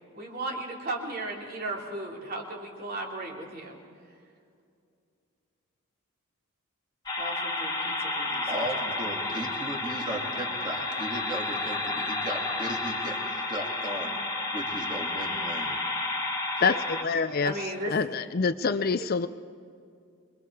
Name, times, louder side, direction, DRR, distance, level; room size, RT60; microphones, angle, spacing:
voice 1, 0.1-3.8 7.2-8.6 17.4-17.9, right 2 dB, 40° right, -1 dB, 3.3 m, -35 dB
sound 1, 7.1-17.0, left 2 dB, 20° left, 1.9 m, -31 dB
voice 2, 8.5-14.2 14.5-15.8, right 1 dB, 20° right, 0 dB, 2.6 m, -36 dB
voice 3, 16.6-17.5 17.9-19.3, left 5 dB, 45° left, 12 dB, 0.5 m, -26 dB
26.0 x 22.5 x 4.8 m, 2.3 s
head